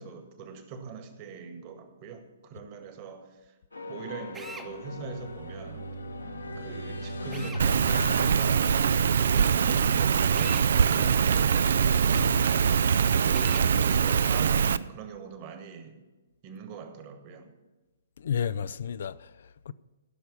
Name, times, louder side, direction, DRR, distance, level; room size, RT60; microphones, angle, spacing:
voice 1, 0.0-3.5 3.9-5.9 6.5-8.7 9.1-11.8 12.7-16.0 16.4-17.5, right 5 dB, 35° right, 1.6 m, -41 dB
sound 1, 3.7-9.6, right 1 dB, 80° left, 1.5 m, -37 dB
Drill, 4.3-4.7 7.3-7.7 10.3-10.7 13.3-13.7, right 3 dB, 10° right, 0.9 m, -42 dB
Rain, 7.6-14.8, right 7 dB, 55° right, 0.4 m, -23 dB
voice 2, 12.1-12.7 18.2-19.7, left 7 dB, 55° left, 0.4 m, -33 dB
15.0 x 6.6 x 6.9 m
figure-of-eight pair, 120°, 0 cm